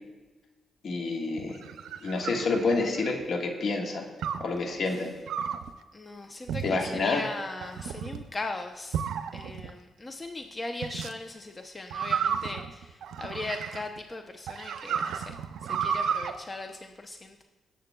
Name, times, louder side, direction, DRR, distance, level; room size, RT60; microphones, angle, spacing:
voice 1, 0.8-1.6 2.0-4.0 4.4-5.1 6.6-7.2, left 3 dB, 60° left, 2 dB, 1.5 m, -28 dB
sound 1, 1.4-3.2 4.2-4.6 5.3-5.7 6.5-7.0 7.6-8.2 8.9-9.7 10.8-11.1 11.9-14.0 14.5-16.3, right 7 dB, 85° right, 0.5 m, -32 dB
voice 2, 4.6-5.1 5.9-15.4 15.7-17.4, left 2 dB, 30° left, 5 dB, 0.6 m, -39 dB
18.0 x 7.6 x 2.3 m, 1.3 s
cardioid pair, 80°, 0 cm